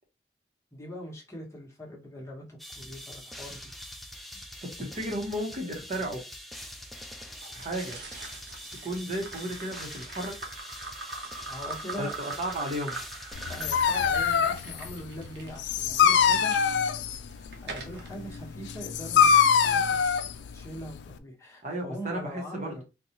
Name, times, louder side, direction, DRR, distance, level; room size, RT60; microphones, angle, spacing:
voice 1, 0.7-3.7 11.5-12.1 13.5-16.6 17.6-20.3 20.5-22.8, equal, 15° left, 1.0 m, -41 dB
sound 1, 2.6-14.5, equal, ahead, 0.4 m, -44 dB
voice 2, 4.6-6.2 7.5-8.0 8.8-10.4 11.9-13.0 21.6-22.8, right 1 dB, 40° right, 0.9 m, -34 dB
sound 2, 7.4-16.6 17.2-18.1, right 3 dB, 75° right, 0.9 m, -42 dB
Dog, 13.3-21.2, left 7 dB, 80° left, 0.4 m, -24 dB
4.0 x 2.3 x 2.8 m
head